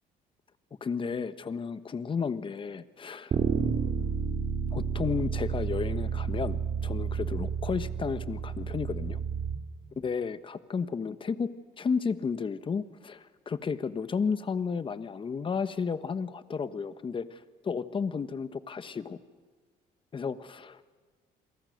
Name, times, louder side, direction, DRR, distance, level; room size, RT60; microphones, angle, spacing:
voice 1, 0.8-3.4 4.7-9.2 10.0-11.5 11.8-19.2 20.1-20.9, left 5 dB, 30° left, 13 dB, 1.1 m, -33 dB
Bass guitar, 3.3-9.6, right 6 dB, 50° right, 2.6 m, -31 dB
29.0 x 23.0 x 6.5 m, 1.5 s
cardioid pair, 110°, 17 cm